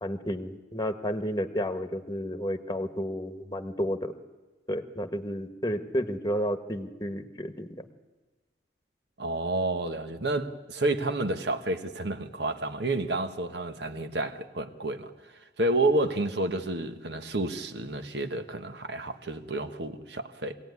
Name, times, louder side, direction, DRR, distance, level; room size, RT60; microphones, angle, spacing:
voice 1, 0.0-4.1 4.7-7.7, equal, 20° left, 1.3 m, -31 dB
voice 2, 9.2-15.1 15.6-20.6, right 2 dB, 70° right, 1.4 m, -30 dB
24.0 x 16.5 x 9.6 m
head